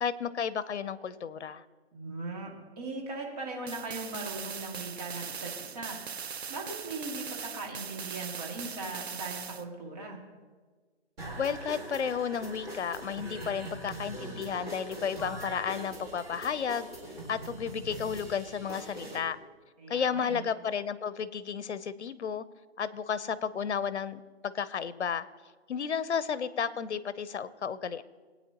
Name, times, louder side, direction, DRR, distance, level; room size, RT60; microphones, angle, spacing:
voice 1, 0.0-1.6 11.4-16.9 17.3-19.4 19.9-22.4 22.8-25.3 25.7-28.0, left 7 dB, 70° left, 15 dB, 0.8 m, -32 dB
voice 2, 1.9-6.0 6.2-10.2 19.8-20.4, right 3 dB, 35° right, -2 dB, 2.5 m, -39 dB
sound 1, 3.7-9.7, right 7 dB, 65° right, 0.9 m, -40 dB
sound 2, 11.2-19.2, right 1 dB, 15° right, 2.0 m, -42 dB
20.0 x 9.1 x 3.0 m, 1.4 s
hypercardioid pair, 165°, 35 cm